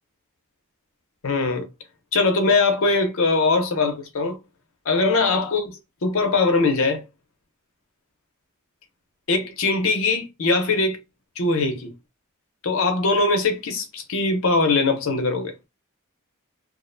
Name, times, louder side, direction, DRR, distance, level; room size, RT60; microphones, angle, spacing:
voice 1, 1.2-1.7 2.1-4.4 4.9-5.7 6.0-7.0 9.3-11.0 11.4-11.9 12.6-15.5, left 3 dB, 65° left, 0.7 m, -21 dB
2.5 x 2.1 x 2.5 m
head